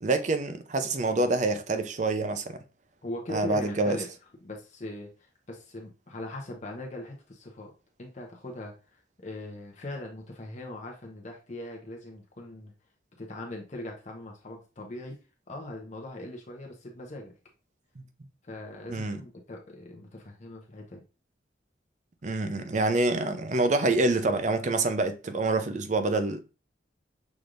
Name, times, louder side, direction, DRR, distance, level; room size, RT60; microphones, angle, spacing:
voice 1, 0.0-2.6 3.3-4.0 18.9-19.2 22.2-26.4, right 2 dB, 40° right, 0.5 m, -26 dB
voice 2, 3.0-4.1 4.4-7.7 8.0-12.7 13.2-15.2 15.5-17.3 18.4-21.0, left 1 dB, 40° left, 0.8 m, -40 dB
6.1 x 3.4 x 2.5 m
head